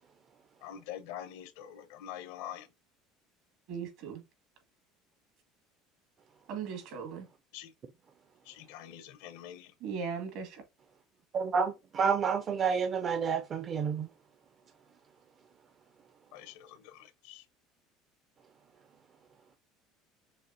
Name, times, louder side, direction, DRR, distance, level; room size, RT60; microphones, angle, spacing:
voice 1, 0.6-2.7 7.5-7.7 8.5-9.7 16.3-17.4, left 11 dB, 85° left, 0.7 m, -45 dB
voice 2, 3.7-4.2 6.5-7.3 9.8-10.6, right 6 dB, 70° right, 1.9 m, -38 dB
voice 3, 11.3-14.1, right 6 dB, 35° right, 0.4 m, -29 dB
6.4 x 2.5 x 2.6 m
cardioid pair, 125°, 0 cm